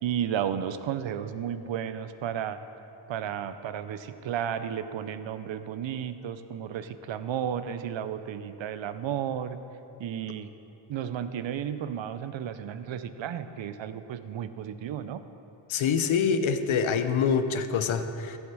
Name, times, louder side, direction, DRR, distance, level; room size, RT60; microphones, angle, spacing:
voice 1, 0.0-2.6 3.1-9.6 10.0-10.5 10.9-15.3, right 9 dB, 70° right, 11 dB, 0.6 m, -33 dB
voice 2, 15.7-18.4, left 6 dB, 80° left, 9 dB, 0.8 m, -25 dB
14.5 x 7.2 x 4.8 m, 2.9 s
wide cardioid pair, 155°, 47 cm